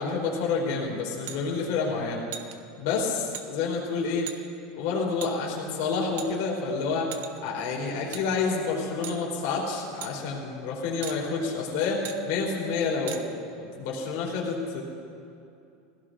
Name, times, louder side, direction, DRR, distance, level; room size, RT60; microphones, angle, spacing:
voice 1, 0.0-2.2 2.8-4.3 4.7-7.1 7.4-14.8, left 4 dB, 55° left, -3 dB, 3.0 m, -29 dB
sound 1, 1.3-1.4 2.3-2.5 3.3-3.5 4.3-4.4 5.2-5.3 6.2-6.6 7.1-7.5 8.1-8.2 9.0-9.2 10.0-10.1 11.0-11.2 12.0-12.2 13.1-13.2, right 9 dB, 75° right, 1.1 m, -37 dB
21.0 x 16.5 x 3.7 m, 2.6 s
supercardioid pair, 175°, 0 cm